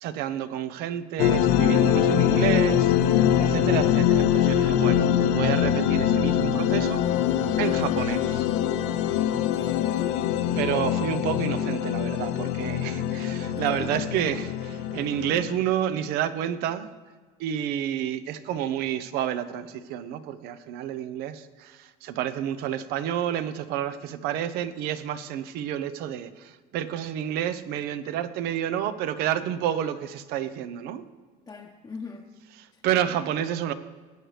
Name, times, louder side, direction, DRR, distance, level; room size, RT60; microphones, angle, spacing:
voice 1, 0.0-7.0 7.6-8.5 10.5-16.9 17.4-31.0 32.6-33.7, right 10 dB, 70° right, 14 dB, 0.7 m, -30 dB
sound 1, 1.2-15.6, left 10 dB, 75° left, 0.6 m, -23 dB
voice 2, 9.3-10.2 13.6-13.9 31.5-32.3 32.7-32.8, left 4 dB, 20° left, 0 dB, 0.8 m, -40 dB
18.5 x 8.0 x 3.2 m, 1.5 s
cardioid pair, 120°, 17 cm